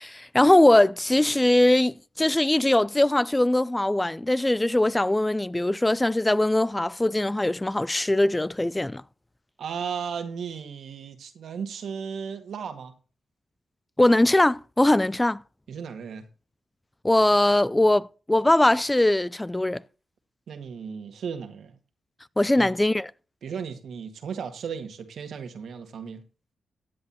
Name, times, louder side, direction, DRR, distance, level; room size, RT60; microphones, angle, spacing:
voice 1, 0.0-9.0 14.0-15.4 17.0-19.8 22.4-23.1, left 1 dB, 15° left, 0.4 m, -21 dB
voice 2, 9.6-12.9 15.7-16.3 20.5-21.8 22.5-22.7 23.4-26.2, right 6 dB, 75° right, 1.8 m, -35 dB
15.5 x 8.8 x 2.9 m
supercardioid pair, 50°, 0 cm